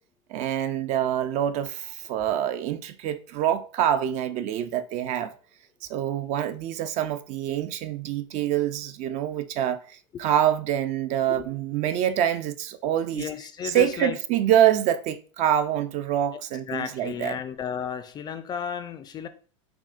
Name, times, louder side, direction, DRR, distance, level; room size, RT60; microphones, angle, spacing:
voice 1, 0.3-5.3 5.8-13.3 13.6-17.4, right 10 dB, 45° right, 0.4 m, -26 dB
voice 2, 13.1-14.2 16.7-19.3, left 8 dB, 25° left, 0.3 m, -33 dB
5.8 x 2.2 x 2.4 m
supercardioid pair, 120°, 17 cm